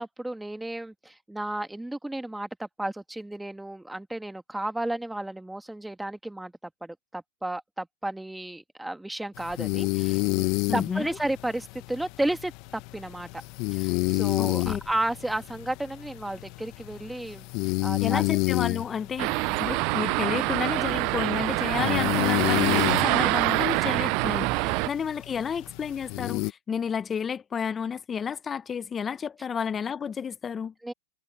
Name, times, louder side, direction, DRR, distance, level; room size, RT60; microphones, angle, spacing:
voice 1, 0.0-13.4 13.7-17.5 17.8-18.3 30.8-30.9, right 1 dB, 5° right, 2.1 m, -33 dB
sound 1, 9.4-26.5, left 24 dB, 45° left, 1.1 m, -30 dB
voice 2, 10.7-11.2 14.4-14.8 18.0-30.7, left 7 dB, 20° left, 0.8 m, -31 dB
sound 2, 19.2-24.9, right 27 dB, 45° right, 0.4 m, -25 dB
hypercardioid pair, 120°, 0 cm